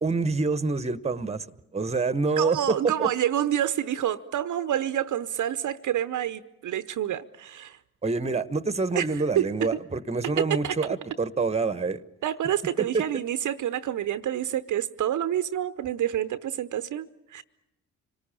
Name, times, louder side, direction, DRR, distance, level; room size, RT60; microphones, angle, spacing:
voice 1, 0.0-1.5 1.7-3.1 8.0-12.0 12.8-13.0, right 4 dB, 15° right, 16 dB, 1.1 m, -26 dB
voice 2, 2.4-7.8 8.9-9.5 10.4-10.7 12.2-17.4, right 11 dB, 55° right, 14 dB, 0.8 m, -28 dB
25.5 x 19.0 x 8.8 m, 0.92 s
hypercardioid pair, 50°, 36 cm